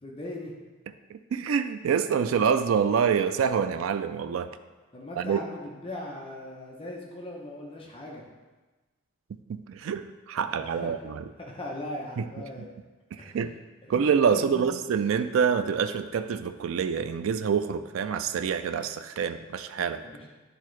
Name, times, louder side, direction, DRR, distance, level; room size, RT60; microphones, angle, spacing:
voice 1, 0.0-0.5 4.9-8.3 10.7-11.1 11.4-12.7 13.2-13.4 13.8-14.6 20.0-20.3, left 1 dB, 25° left, -2 dB, 0.8 m, -39 dB
voice 2, 1.1-4.5 5.2-5.4 9.3-11.2 12.2-12.3 13.1-13.5 13.9-20.0, right 7 dB, 85° right, 10 dB, 0.3 m, -26 dB
10.0 x 3.7 x 3.2 m, 1.2 s
head